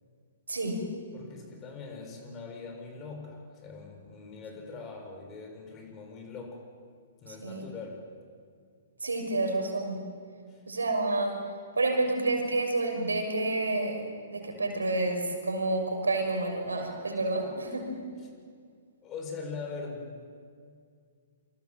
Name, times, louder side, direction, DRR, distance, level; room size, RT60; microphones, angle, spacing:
voice 1, 0.5-0.8 7.3-7.7 9.0-10.0 10.7-11.4 11.8-14.0 14.3-17.9, right 2 dB, 80° right, 4 dB, 6.2 m, -29 dB
voice 2, 1.1-6.6 7.2-8.0 10.5-10.6 17.4-17.5 19.0-20.3, left 4 dB, 25° left, 3 dB, 7.5 m, -42 dB
27.5 x 26.5 x 7.6 m, 2.1 s
figure-of-eight pair, 115°, 0 cm